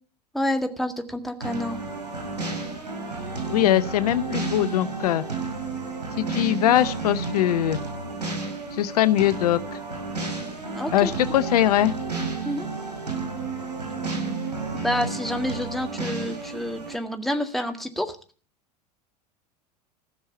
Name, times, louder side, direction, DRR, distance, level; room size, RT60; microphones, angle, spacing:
voice 1, 0.3-1.8 10.7-11.1 11.5-11.6 12.4-12.7 14.7-18.2, left 1 dB, ahead, 5 dB, 1.9 m, -28 dB
sound 1, 1.4-17.0, right 3 dB, 85° right, 5.7 m, -32 dB
voice 2, 3.5-5.2 6.2-7.8 8.7-9.6 10.9-11.9, left 13 dB, 70° left, 15 dB, 0.8 m, -21 dB
15.5 x 6.4 x 8.6 m, 0.40 s
figure-of-eight pair, 85°, 21 cm